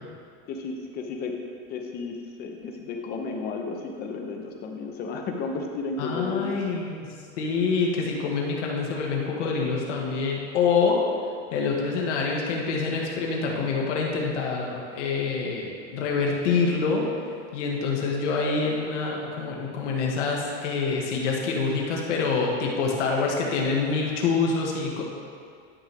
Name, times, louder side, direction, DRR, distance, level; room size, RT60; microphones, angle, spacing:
voice 1, 0.5-1.4 1.7-6.6, left 4 dB, 25° left, 3 dB, 0.8 m, -33 dB
voice 2, 6.0-7.1 7.4-11.0 11.5-17.1 17.5-25.0, left 4 dB, 85° left, -1 dB, 1.8 m, -26 dB
12.0 x 6.1 x 3.5 m, 2.3 s
supercardioid pair, 165°, 35 cm